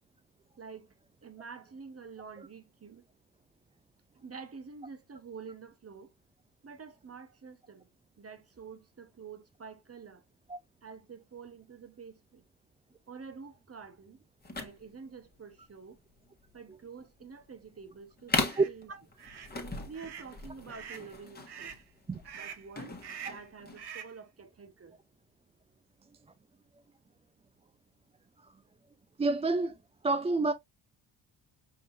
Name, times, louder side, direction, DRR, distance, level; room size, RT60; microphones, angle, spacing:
voice 1, 0.6-0.9 1.2-3.1 4.1-6.1 6.6-7.9 8.2-10.2 10.8-12.4 13.1-14.2 14.5-16.0 16.5-19.0 19.8-21.8 22.3-25.0, right 5 dB, 30° right, 1.2 m, -48 dB
sound 1, 14.4-23.9, left 3 dB, 20° left, 1.6 m, -38 dB
sound 2, 18.4-18.7 19.2-19.5 19.9-20.3 20.7-21.1 21.5-21.8 22.2-22.7 23.0-23.5 23.8-24.2, right 8 dB, 55° right, 1.0 m, -45 dB
voice 2, 29.2-29.8 30.0-30.5, right 3 dB, 15° right, 0.4 m, -27 dB
5.1 x 3.9 x 2.6 m
supercardioid pair, 60°, 47 cm